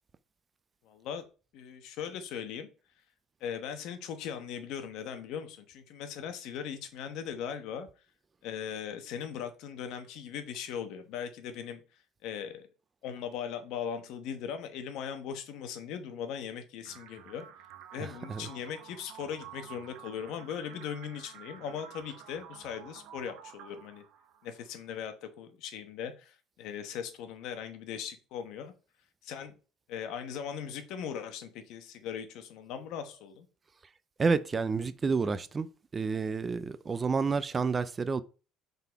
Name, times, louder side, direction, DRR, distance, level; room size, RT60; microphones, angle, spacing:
voice 1, 0.8-1.2 1.5-2.7 3.4-7.9 8.4-11.8 12.2-12.7 13.0-17.5 17.9-24.0 24.4-28.7 29.2-29.5 29.9-33.5, left 8 dB, 60° left, 1.0 m, -39 dB
sound 1, 16.9-24.8, right 9 dB, 70° right, 0.8 m, -51 dB
voice 2, 18.0-18.5 34.2-35.7 35.9-38.2, right 4 dB, 20° right, 0.3 m, -29 dB
5.5 x 3.9 x 4.5 m
cardioid pair, 155°, 0 cm